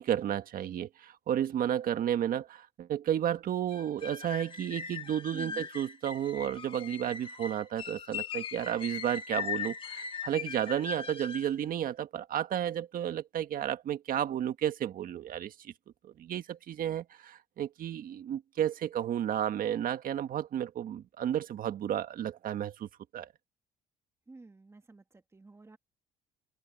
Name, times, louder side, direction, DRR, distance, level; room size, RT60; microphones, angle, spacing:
voice 1, 0.0-15.7 16.0-23.3, right 10 dB, 55° right, 1.6 m, -32 dB
sound 1, 3.7-11.5, left 6 dB, 30° left, 1.7 m, -39 dB
voice 2, 5.3-5.7 24.3-25.8, right 3 dB, 15° right, 1.9 m, -50 dB
cardioid pair, 110°, 17 cm